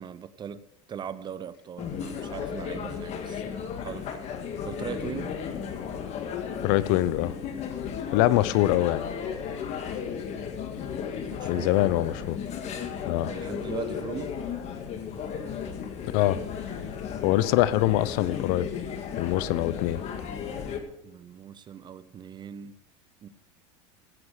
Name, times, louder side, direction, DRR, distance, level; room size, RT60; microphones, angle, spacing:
voice 1, 0.0-4.3 4.6-5.4 11.3-11.7 13.2-14.4 21.0-22.8 23.2-23.3, right 8 dB, 30° right, 15 dB, 0.7 m, -40 dB
sound 1, 1.8-20.8, left 7 dB, 45° left, 1.8 m, -34 dB
voice 2, 6.6-7.3 8.1-9.0 11.4-12.4 13.0-13.3 16.1-16.4 17.2-18.7 19.2-20.0, left 15 dB, 65° left, 17 dB, 0.7 m, -24 dB
16.5 x 7.8 x 4.9 m, 0.81 s
supercardioid pair, 115°, 16 cm